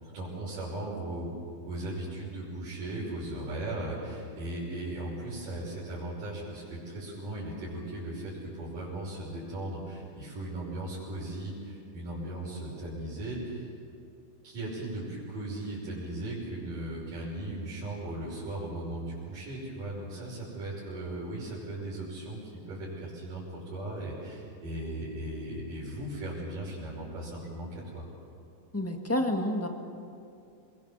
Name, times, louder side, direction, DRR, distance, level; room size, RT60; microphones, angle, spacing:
voice 1, 0.0-1.3 1.7-13.7 14.4-28.1, right 1 dB, 85° right, -8 dB, 7.4 m, -37 dB
voice 2, 28.7-29.7, left 1 dB, 15° left, 3 dB, 0.5 m, -29 dB
28.5 x 22.0 x 7.3 m, 2.5 s
omnidirectional pair, 3.7 m